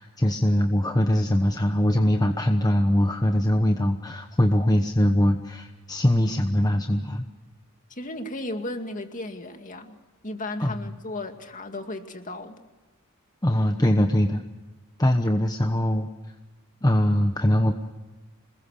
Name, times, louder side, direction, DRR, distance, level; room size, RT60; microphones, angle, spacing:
voice 1, 0.0-7.3 10.6-10.8 13.4-14.4 15.0-16.1 16.8-17.7, left 1 dB, 20° left, 5 dB, 1.0 m, -22 dB
voice 2, 7.9-10.0 10.2-12.7, left 2 dB, 40° left, 6 dB, 2.2 m, -35 dB
27.0 x 21.0 x 6.6 m, 1.2 s
head